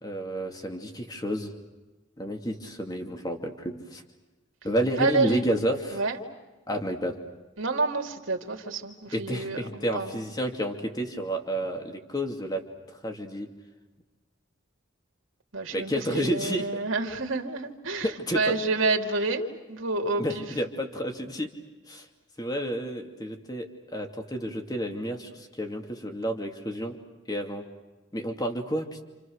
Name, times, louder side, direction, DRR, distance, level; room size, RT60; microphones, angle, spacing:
voice 1, 0.0-1.5 2.2-4.0 4.6-6.0 6.7-7.2 9.1-13.5 15.7-16.7 18.0-18.5 20.2-21.5 21.9-22.1 22.4-27.0 27.3-27.7 28.1-29.0, equal, 20° left, 4 dB, 2.5 m, -30 dB
voice 2, 5.0-5.4 5.9-6.2 7.6-10.1 15.5-18.1 18.3-19.4 19.7-20.4, right 3 dB, 70° right, 3 dB, 2.9 m, -28 dB
29.0 x 28.5 x 6.5 m, 1.2 s
head